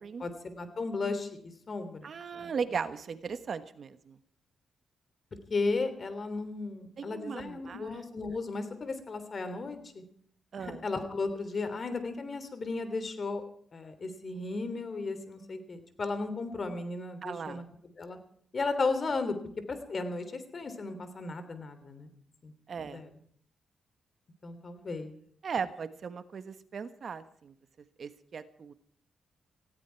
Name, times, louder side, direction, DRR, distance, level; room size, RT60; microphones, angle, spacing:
voice 1, 0.2-1.3 1.7-2.1 2.3-2.5 5.5-10.0 10.6-13.4 13.7-17.6 18.0-18.2 18.5-19.3 19.9-20.2 20.5-22.1 22.4-22.5 22.9-23.1 24.4-25.1, left 3 dB, 40° left, 10 dB, 3.2 m, -34 dB
voice 2, 2.0-4.2 7.0-8.0 10.5-10.8 17.2-17.6 22.7-23.0 25.4-27.5 28.0-28.7, right 6 dB, 55° right, 11 dB, 1.3 m, -37 dB
18.5 x 16.5 x 4.7 m, 0.62 s
cardioid pair, 85°, 0 cm